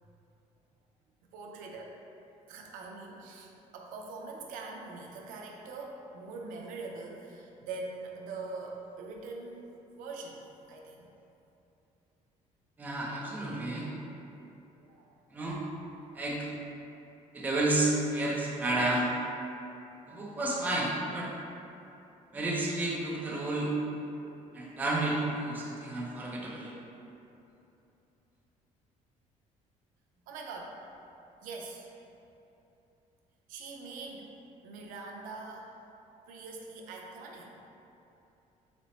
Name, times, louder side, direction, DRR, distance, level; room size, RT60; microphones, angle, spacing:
voice 1, 1.2-1.9 2.5-9.6 10.0-11.1 14.3-14.4 14.8-15.4 16.0-16.2 30.3-30.8 31.4-31.9 33.5-34.3 34.6-35.7 36.3-37.6, right 3 dB, 90° right, 0 dB, 0.5 m, -43 dB
voice 2, 12.8-13.9 15.3-15.6 16.1-16.5 17.3-19.1 20.1-21.3 22.3-23.7 24.5-26.7, right 2 dB, 10° right, -4 dB, 0.4 m, -31 dB
4.1 x 2.0 x 4.1 m, 2.9 s
cardioid pair, 175°, 14 cm